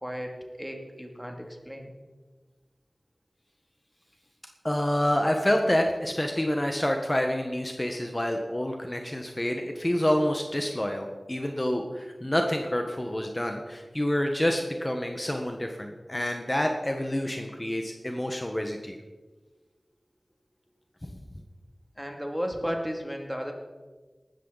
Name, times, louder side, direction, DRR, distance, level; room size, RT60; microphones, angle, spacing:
voice 1, 0.0-1.9 22.0-23.5, equal, ahead, 2 dB, 2.6 m, -34 dB
voice 2, 4.6-19.0 21.0-21.1, left 1 dB, 25° left, 3 dB, 1.4 m, -28 dB
18.0 x 13.5 x 4.1 m, 1.3 s
wide cardioid pair, 55°, 0 cm